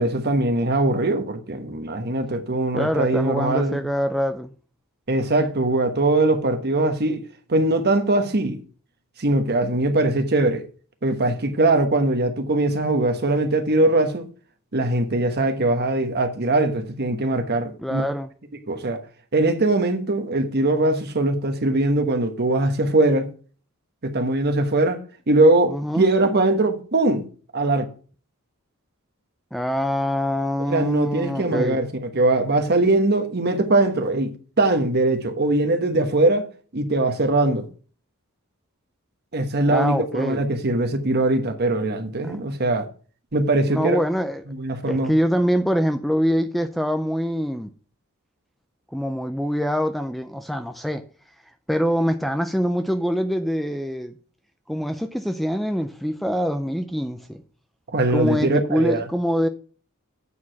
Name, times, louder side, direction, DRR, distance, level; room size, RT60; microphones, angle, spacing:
voice 1, 0.0-3.8 5.1-7.2 7.5-8.6 9.2-10.6 11.0-14.3 14.7-18.1 18.7-19.0 19.3-23.3 24.0-25.0 25.3-27.2 27.5-27.9 30.7-36.4 36.7-37.7 39.3-42.9 43.3-44.0 44.5-45.1 57.9-59.0, right 2 dB, 50° right, 1.2 m, -21 dB
voice 2, 2.7-4.5 17.8-18.3 25.7-26.1 29.5-31.8 39.7-40.4 42.2-42.4 43.7-44.4 44.8-47.7 48.9-51.0 51.7-54.1 54.7-57.4 58.1-59.5, equal, ahead, 0.4 m, -24 dB
8.4 x 4.8 x 5.7 m
head